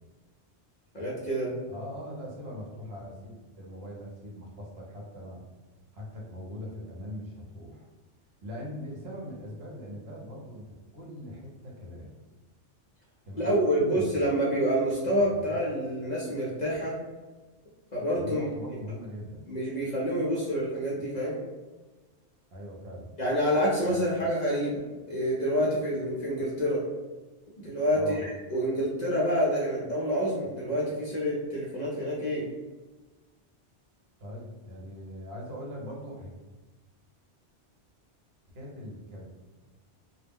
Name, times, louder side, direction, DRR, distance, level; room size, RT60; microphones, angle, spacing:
voice 1, 0.9-1.5 13.4-17.0 17.9-18.4 19.5-21.4 23.2-24.7 25.1-26.8 27.6-32.5, equal, 50° left, -5 dB, 0.6 m, -27 dB
voice 2, 1.7-5.4 5.9-7.9 8.4-12.1 13.2-14.3 15.3-15.6 18.1-19.4 22.5-23.1 23.9-24.1 27.9-28.3 34.2-36.3 38.5-39.3, equal, 65° right, -2 dB, 0.9 m, -41 dB
2.2 x 2.0 x 3.4 m, 1.2 s
omnidirectional pair, 1.2 m